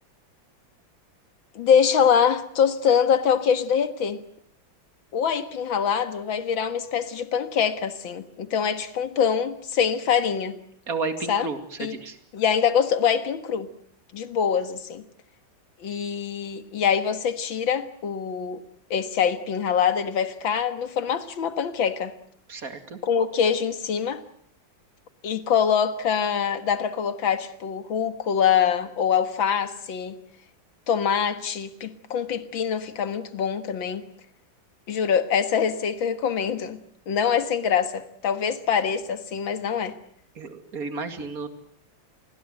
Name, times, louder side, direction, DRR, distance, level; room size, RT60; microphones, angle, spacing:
voice 1, 1.6-4.2 5.1-10.6 11.3-11.5 11.8-12.0 12.3-13.7 14.1-15.0 15.8-18.6 18.9-22.1 23.0-24.2 25.2-30.2 30.9-34.0 34.9-36.8 37.1-40.0, left 7 dB, 80° left, 2.3 m, -24 dB
voice 2, 10.9-12.2 22.5-23.0 40.4-41.5, right 4 dB, 50° right, 2.8 m, -32 dB
28.0 x 21.0 x 7.9 m
omnidirectional pair, 2.1 m